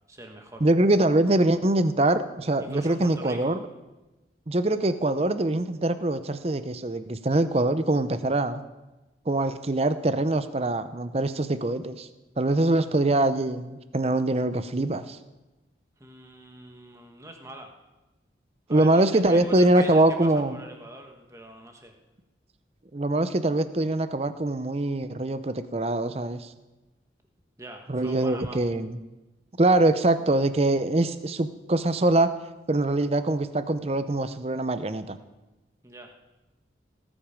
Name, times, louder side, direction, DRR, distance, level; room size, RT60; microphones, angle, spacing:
voice 1, 0.1-0.7 2.6-3.6 16.0-17.7 18.7-21.9 27.6-28.6 35.8-36.1, right 1 dB, 15° right, 3 dB, 1.4 m, -43 dB
voice 2, 0.6-3.6 4.5-8.6 9.3-12.1 12.4-15.2 18.7-20.6 22.9-26.5 27.9-29.0 29.6-32.3 32.7-35.2, right 2 dB, 35° right, 12 dB, 0.6 m, -23 dB
18.5 x 8.9 x 5.2 m, 1.1 s
head